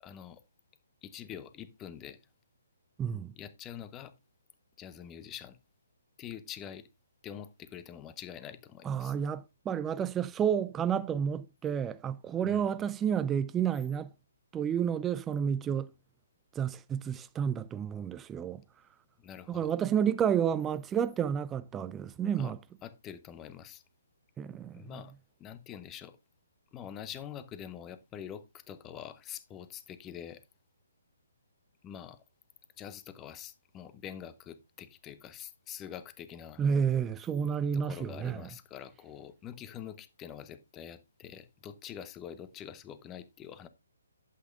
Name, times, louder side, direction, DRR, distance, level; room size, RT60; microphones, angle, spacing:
voice 1, 0.0-0.4 1.0-2.2 3.3-4.1 4.8-5.6 6.2-6.9 7.2-9.1 12.4-12.7 19.2-19.7 22.3-22.5 22.8-23.8 24.7-25.1 25.4-26.2 26.7-30.4 31.8-32.2 32.8-36.6 37.7-43.7, left 9 dB, 20° left, 0.9 m, -45 dB
voice 2, 3.0-3.3 8.8-14.1 14.5-15.9 16.6-18.6 19.5-22.6 24.4-25.0 36.6-38.4, right 8 dB, 15° right, 0.4 m, -30 dB
11.5 x 8.4 x 2.4 m
figure-of-eight pair, 140°, 0 cm